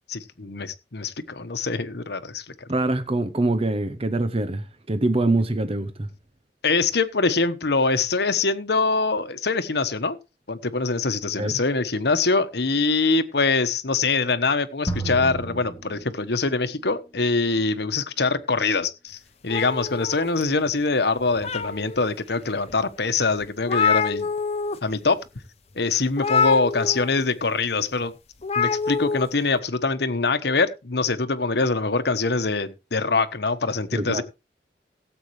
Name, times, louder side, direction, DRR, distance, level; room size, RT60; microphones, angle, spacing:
voice 1, 0.1-2.7 6.6-10.2 10.5-24.3 24.8-25.2 25.7-28.1 28.6-34.2, left 3 dB, 70° left, 1.2 m, -24 dB
voice 2, 2.7-6.1 11.4-11.5 33.9-34.2, right 2 dB, 35° right, 0.8 m, -24 dB
sound 1, 14.9-16.7, right 2 dB, 20° left, 1.8 m, -32 dB
sound 2, 19.5-20.7 21.2-22.1 22.7-22.8 23.1-23.2 23.4-24.8 25.0-25.3 26.2-27.2 28.4-29.3, left 5 dB, 40° left, 0.9 m, -25 dB
17.5 x 8.1 x 3.2 m
head